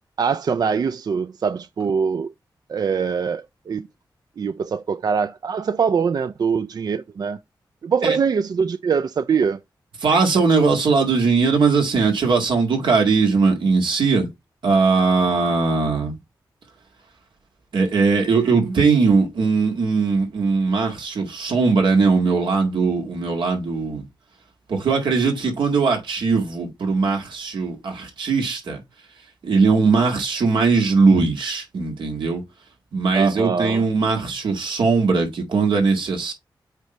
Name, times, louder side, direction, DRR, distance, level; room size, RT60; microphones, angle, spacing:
voice 1, 0.2-2.3 2.7-3.9 4.4-7.4 7.8-9.6 33.1-33.8, right 6 dB, 55° right, 0.4 m, -23 dB
voice 2, 10.0-14.3 14.6-16.1 17.7-24.0 24.7-28.8 29.4-32.4 32.9-36.3, right 4 dB, 90° right, 2.0 m, -19 dB
8.1 x 2.7 x 4.5 m
wide cardioid pair, 90°, 8 cm